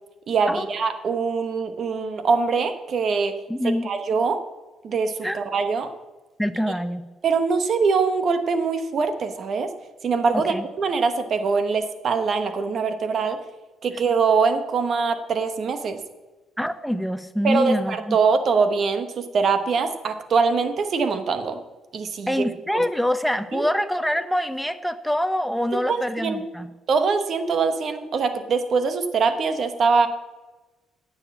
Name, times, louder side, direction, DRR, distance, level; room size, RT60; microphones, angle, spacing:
voice 1, 0.3-3.4 3.6-4.4 4.8-5.9 7.2-9.7 10.0-13.4 13.8-16.0 17.4-21.6 21.9-22.4 22.7-22.9 23.5-23.7 25.7-26.4 26.9-30.1, right 5 dB, 55° right, 9 dB, 1.1 m, -23 dB
voice 2, 3.5-3.9 5.2-5.4 6.4-7.1 10.3-10.6 16.6-18.2 22.3-26.7, equal, ahead, 10 dB, 0.8 m, -25 dB
9.7 x 6.9 x 7.3 m, 1.2 s
cardioid pair, 90°, 0 cm